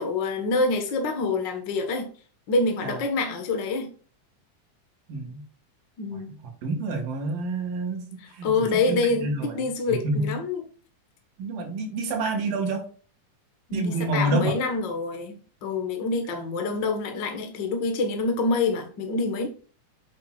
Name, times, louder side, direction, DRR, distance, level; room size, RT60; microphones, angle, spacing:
voice 1, 0.0-2.1 2.5-3.9 6.0-6.3 8.2-10.7 13.7-15.4 15.6-19.5, left 3 dB, 50° left, 1.4 m, -26 dB
voice 2, 5.1-5.4 6.1-6.2 6.6-9.5 10.0-10.3 11.4-12.9 13.7-14.5, right 2 dB, 80° right, 3.9 m, -28 dB
8.5 x 7.6 x 2.4 m
omnidirectional pair, 3.9 m